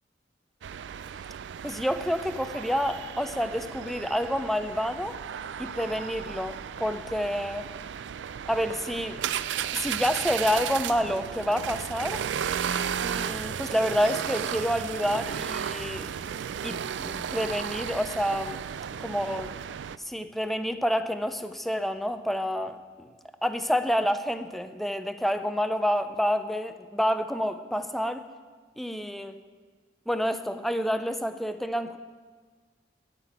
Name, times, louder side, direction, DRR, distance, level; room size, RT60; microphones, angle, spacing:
sound 1, 0.6-20.0, right 8 dB, 90° right, 0.4 m, -34 dB
voice 1, 1.6-5.2 5.6-7.7 8.5-9.2 9.7-12.2 13.0-16.1 16.6-18.6 19.0-19.5 20.0-23.1 23.4-28.3 28.8-29.3 30.1-32.0, equal, ahead, 9 dB, 0.5 m, -28 dB
sound 2, 10.9-24.2, right 1 dB, 70° right, 3.9 m, -55 dB
12.5 x 5.9 x 9.0 m, 1.5 s
head